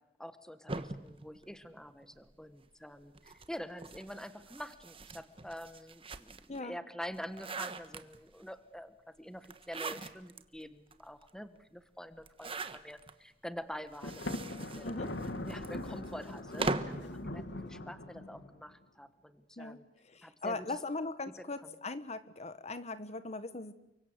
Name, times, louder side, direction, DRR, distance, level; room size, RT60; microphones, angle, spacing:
voice 1, 0.2-14.9 15.4-19.8 20.2-20.7 21.4-21.5, equal, 5° left, 11 dB, 1.3 m, -46 dB
sound 1, 0.7-2.3 3.1-6.6 7.0-8.4 9.4-10.4 10.9-11.0 11.2-11.3 12.2-13.1 13.9-17.1, right 3 dB, 30° right, 1.3 m, -41 dB
Thunder, 14.0-18.6, left 1 dB, 75° left, 2.1 m, -41 dB
voice 2, 14.8-15.2 17.2-17.5 19.6-19.8 20.0-23.7, left 3 dB, 40° left, 13 dB, 1.3 m, -40 dB
30.0 x 24.0 x 8.0 m, 0.89 s
head